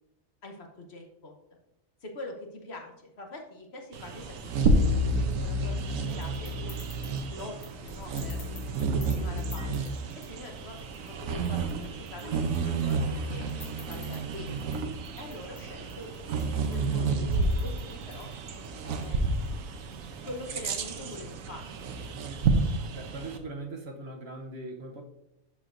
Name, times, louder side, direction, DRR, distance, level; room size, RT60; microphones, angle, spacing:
voice 1, 0.4-1.3 2.0-5.8 6.1-6.8 7.3-8.5 8.9-9.8 10.2-13.5 13.8-14.7 15.1-16.1 16.7-18.3 18.8-19.4 20.2-21.7, left 2 dB, 55° left, 2 dB, 1.2 m, -44 dB
Bird vocalization bird call bird song, 3.9-23.4, right 3 dB, 85° right, 1.1 m, -30 dB
sound 1, 5.8-21.5, left 2 dB, 85° left, 2.4 m, -54 dB
voice 2, 22.9-25.0, right 2 dB, 55° right, 2 dB, 1.1 m, -40 dB
12.0 x 4.6 x 2.5 m, 0.87 s
omnidirectional pair, 1.4 m